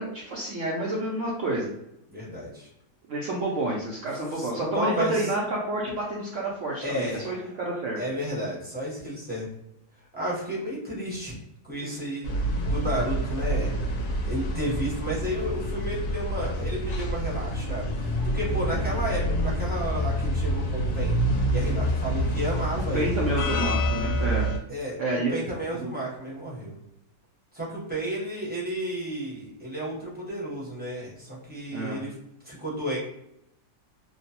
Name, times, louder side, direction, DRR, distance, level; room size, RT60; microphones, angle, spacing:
voice 1, 0.0-1.7 3.1-8.0 22.9-24.5 25.0-25.4 25.8-25.9 31.7-32.0, right 1 dB, 65° right, -4 dB, 0.7 m, -29 dB
voice 2, 2.1-2.7 4.3-5.3 6.8-7.5 8.0-9.5 10.1-11.4 11.7-13.7 14.2-23.3 24.7-24.9 25.3-26.7 27.5-32.1 32.4-33.0, equal, 10° right, -8 dB, 0.6 m, -32 dB
sound 1, 12.2-24.6, equal, 65° left, 0.9 m, -27 dB
2.9 x 2.0 x 2.7 m, 0.81 s
omnidirectional pair, 1.8 m